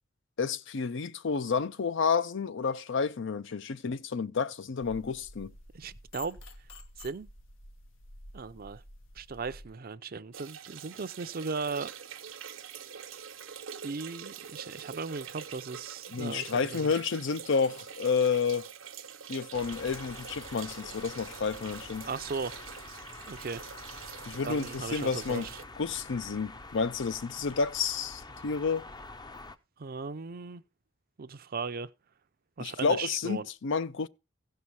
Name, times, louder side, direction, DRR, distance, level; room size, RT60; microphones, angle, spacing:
voice 1, 0.4-5.5 16.1-18.7 19.3-22.1 24.3-25.5 25.8-28.9 32.6-34.1, left 5 dB, 65° left, 0.6 m, -30 dB
sound 1, 4.8-9.7, left 2 dB, 90° left, 1.3 m, -50 dB
voice 2, 5.7-6.4 7.0-7.3 8.3-8.8 9.2-11.9 13.8-16.9 22.1-22.6 23.3-23.6 24.3-25.6 29.8-30.6 31.2-31.9 32.6-33.5, right 4 dB, 50° right, 0.6 m, -37 dB
sound 2, 10.3-25.6, right 8 dB, 80° right, 1.0 m, -45 dB
sound 3, 19.5-29.6, left 2 dB, 20° left, 0.6 m, -46 dB
16.0 x 5.6 x 4.7 m
head